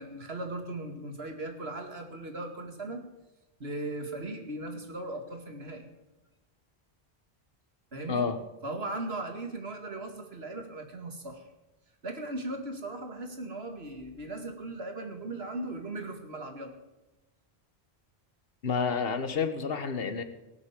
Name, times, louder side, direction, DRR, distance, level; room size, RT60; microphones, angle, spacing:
voice 1, 0.0-3.0 3.6-5.9 7.9-8.3 8.6-11.5 12.0-16.7, right 2 dB, 70° right, 5 dB, 2.5 m, -38 dB
voice 2, 8.1-8.4 18.6-20.2, left 5 dB, 65° left, 9 dB, 1.4 m, -29 dB
18.0 x 8.1 x 7.4 m, 1.0 s
omnidirectional pair, 1.1 m